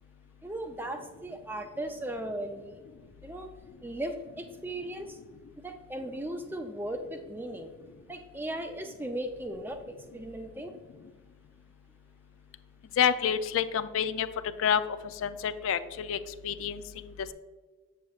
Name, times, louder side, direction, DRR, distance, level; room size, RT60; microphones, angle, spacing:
voice 1, 0.4-2.8 3.2-3.5 3.8-5.2 5.6-7.7 8.1-10.7, right 1 dB, 10° right, 6 dB, 0.4 m, -37 dB
voice 2, 13.0-14.3 14.6-14.8 15.2-16.2 16.4-17.1, left 8 dB, 75° left, 12 dB, 0.3 m, -28 dB
7.3 x 6.7 x 2.4 m, 1.4 s
head